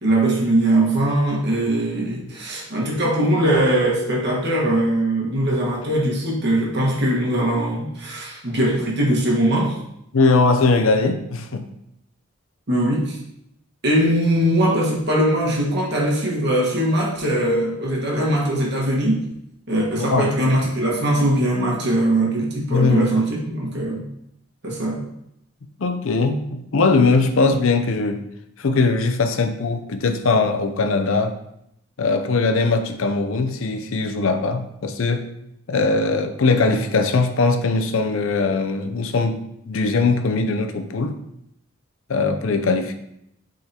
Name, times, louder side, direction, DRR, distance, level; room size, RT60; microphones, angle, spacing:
voice 1, 0.0-9.8 12.7-13.2 13.8-19.3 19.7-24.0 24.6-25.0, right 1 dB, 50° right, -3 dB, 1.5 m, -21 dB
voice 2, 10.1-11.7 20.0-20.4 22.7-23.1 25.8-28.2 28.6-31.4 32.0-35.3 35.7-41.2 42.1-42.9, left 3 dB, 65° left, 7 dB, 0.5 m, -20 dB
8.7 x 3.8 x 2.9 m, 0.78 s
head